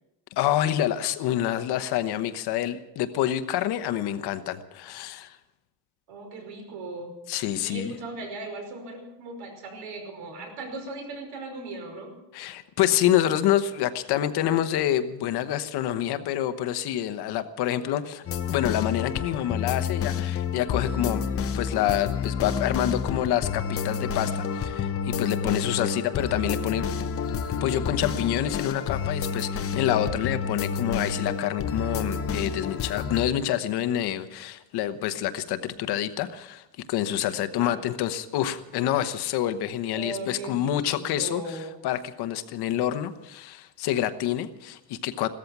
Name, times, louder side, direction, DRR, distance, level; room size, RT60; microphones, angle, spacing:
voice 1, 0.4-5.4 7.3-7.9 12.3-21.2 21.6-26.9 27.6-36.6 36.9-41.4 41.8-45.3, left 11 dB, 60° left, 10 dB, 1.1 m, -27 dB
voice 2, 6.1-7.1 7.6-12.1 25.3-25.6 37.6-37.8 39.9-41.8, right 2 dB, 70° right, 3 dB, 5.3 m, -38 dB
sound 1, 18.3-33.3, left 6 dB, 30° left, 0.9 m, -29 dB
16.5 x 14.0 x 6.0 m, 0.93 s
cardioid pair, 170°, 45 cm